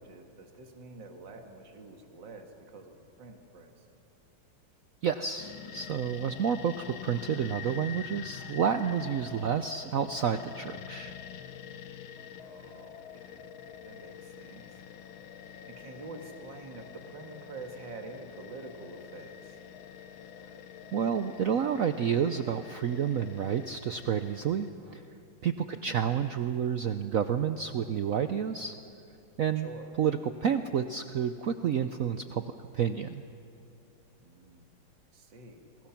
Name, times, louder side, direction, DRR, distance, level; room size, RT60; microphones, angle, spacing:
voice 1, 0.0-2.9 3.2-3.7 12.4-13.5 13.9-14.7 15.0-15.2 15.7-19.6 25.7-26.0 29.6-29.9 34.2-34.6 35.1-35.7, right 3 dB, 60° right, 3 dB, 2.5 m, -47 dB
voice 2, 5.0-11.2 20.9-25.1 25.4-28.8 29.4-29.7 30.0-33.2, right 8 dB, 85° right, 9 dB, 0.7 m, -30 dB
sound 1, 5.4-24.7, left 9 dB, 75° left, 1.7 m, -46 dB
29.5 x 22.0 x 5.9 m, 2.7 s
omnidirectional pair, 2.3 m